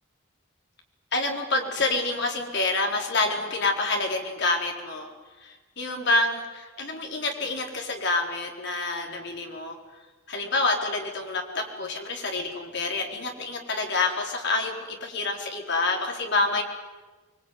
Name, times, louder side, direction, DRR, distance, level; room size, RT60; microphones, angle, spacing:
voice 1, 1.1-5.1 5.4-9.8 10.3-16.6, left 3 dB, 55° left, 2 dB, 4.3 m, -27 dB
24.5 x 23.5 x 9.5 m, 1.2 s
head